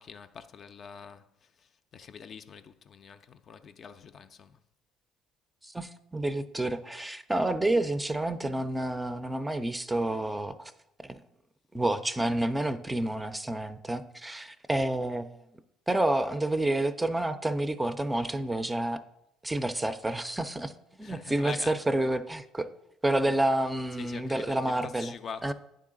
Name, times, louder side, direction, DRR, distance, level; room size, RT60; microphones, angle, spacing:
voice 1, 0.0-4.6 21.0-21.8 23.2-23.4 23.9-25.5, left 6 dB, 50° left, 0.4 m, -45 dB
voice 2, 5.6-10.7 11.0-11.2 11.7-15.3 15.9-19.0 19.4-20.7 21.0-22.7 23.0-25.1 25.4-25.5, right 1 dB, 10° right, 0.4 m, -29 dB
9.2 x 3.8 x 3.8 m
supercardioid pair, 75°, 0 cm